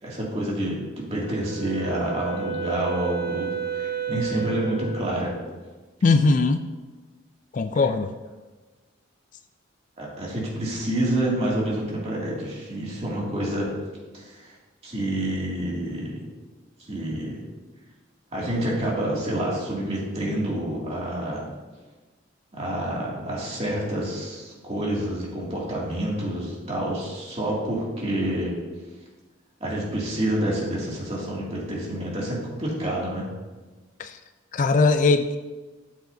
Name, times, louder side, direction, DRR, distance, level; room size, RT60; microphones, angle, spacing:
voice 1, 0.0-5.3 7.7-7.8 10.0-13.7 14.1-14.6 14.8-16.2 16.8-17.4 18.3-21.4 22.5-28.6 29.6-33.3, right 1 dB, 30° right, -5 dB, 2.4 m, -28 dB
Wind instrument woodwind instrument, 1.2-5.3, right 7 dB, 75° right, 1.8 m, -32 dB
voice 2, 6.0-6.6 7.5-8.1 34.0-34.1 34.5-35.4, left 3 dB, 40° left, 9 dB, 0.3 m, -20 dB
12.5 x 7.0 x 2.7 m, 1.3 s
head